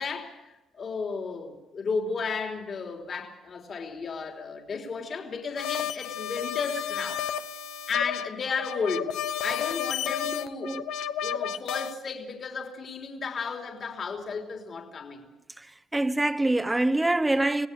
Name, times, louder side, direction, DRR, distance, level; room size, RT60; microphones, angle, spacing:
voice 1, 0.0-7.2 7.9-10.8 11.2-15.3, left 5 dB, 50° left, 3.3 m, -33 dB
sound 1, 5.6-11.9, left 8 dB, 90° left, 0.8 m, -32 dB
voice 2, 15.9-17.7, right 2 dB, 15° right, 1.0 m, -25 dB
26.5 x 18.5 x 6.8 m
cardioid pair, 90°, 0 cm